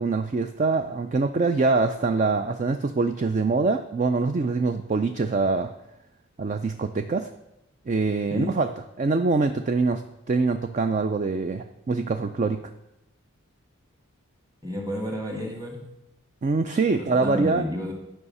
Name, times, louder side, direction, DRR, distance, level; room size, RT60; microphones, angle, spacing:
voice 1, 0.0-5.7 6.4-7.3 7.9-8.7 9.0-12.6 16.4-17.7, right 3 dB, 35° right, 8 dB, 0.4 m, -24 dB
voice 2, 14.6-15.9 16.9-17.9, left 1 dB, 15° right, 0 dB, 1.9 m, -31 dB
9.7 x 5.6 x 5.4 m, 0.88 s
head